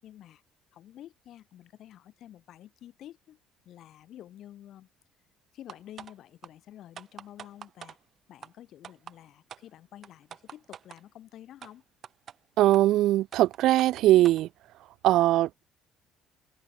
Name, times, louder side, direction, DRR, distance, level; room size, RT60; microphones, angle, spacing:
voice 1, 0.0-0.4 0.7-3.4 3.6-4.9 5.5-8.0 8.3-11.8, left 12 dB, 60° left, 7.6 m, -49 dB
sound 1, 5.7-6.1 6.4-6.5 7.0-8.0 8.4-8.5 8.8-9.2 9.5-9.6 10.0-11.0 11.6-11.7 12.0-12.4 12.7-12.8 13.3-14.4, right 8 dB, 45° right, 5.3 m, -44 dB
voice 2, 12.6-14.5 15.0-15.6, right 15 dB, 70° right, 0.5 m, -21 dB
cardioid pair, 105°, 0 cm